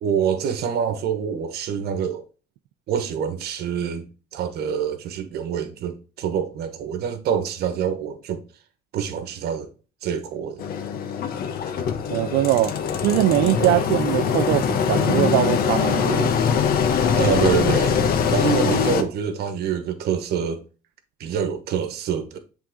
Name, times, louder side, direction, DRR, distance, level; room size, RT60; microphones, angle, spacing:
voice 1, 0.0-2.2 2.9-8.4 8.9-9.7 10.0-10.7 13.6-13.8 17.2-18.0 18.3-20.6 21.2-22.4, right 8 dB, 70° right, 1.3 m, -26 dB
Engine, 10.6-19.0, left 7 dB, 65° left, 1.0 m, -22 dB
voice 2, 12.1-12.7 13.0-16.4, right 15 dB, 85° right, 0.4 m, -21 dB
7.6 x 3.7 x 3.7 m
cardioid pair, 110°, 17 cm